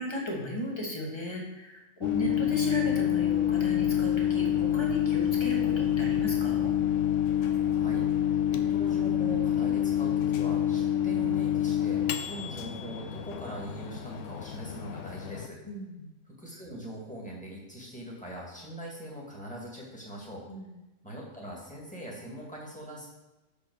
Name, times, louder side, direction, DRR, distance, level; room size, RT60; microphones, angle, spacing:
voice 1, 0.0-6.7 15.7-16.1 20.5-20.7, left 1 dB, 20° left, -2 dB, 1.7 m, -36 dB
Microwave oven, 2.0-15.5, left 10 dB, 85° left, 0.9 m, -27 dB
voice 2, 7.7-8.0 8.5-15.6 16.3-20.5 21.0-23.1, equal, 5° left, -4 dB, 2.0 m, -41 dB
6.1 x 5.3 x 6.2 m, 1.0 s
omnidirectional pair, 1.2 m